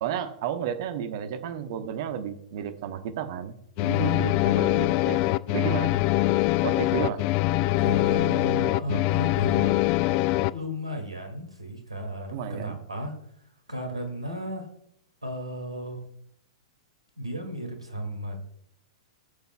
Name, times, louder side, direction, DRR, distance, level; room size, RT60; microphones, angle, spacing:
voice 1, 0.0-6.0 6.6-7.2 12.3-12.8, right 9 dB, 50° right, 8 dB, 1.1 m, -32 dB
sound 1, 3.8-10.5, left 19 dB, 35° left, 0.3 m, -23 dB
voice 2, 3.9-4.3 7.8-9.9 10.5-13.1 13.7-14.7 15.2-16.0 17.2-18.4, right 1 dB, 85° right, 4 dB, 2.3 m, -34 dB
16.0 x 8.1 x 2.3 m, 0.69 s
figure-of-eight pair, 105°, 3 cm